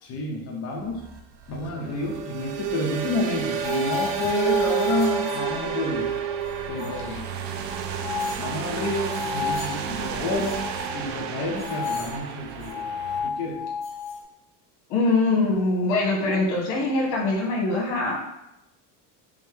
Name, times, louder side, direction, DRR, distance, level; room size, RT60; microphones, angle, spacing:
voice 1, 0.0-1.0 1.5-6.1 6.7-7.3 8.4-10.6 10.9-12.8 13.2-13.6, left 2 dB, 35° left, -2 dB, 0.8 m, -29 dB
sound 1, 0.9-13.3, right 8 dB, 85° right, 0.5 m, -30 dB
sound 2, 3.6-5.9 6.2-7.1 7.7-9.8 10.2-14.2, left 6 dB, 55° left, 1.2 m, -33 dB
voice 2, 14.9-18.2, left 2 dB, 85° left, -1 dB, 1.2 m, -23 dB
5.2 x 2.1 x 3.3 m, 0.86 s
cardioid pair, 135°, 43 cm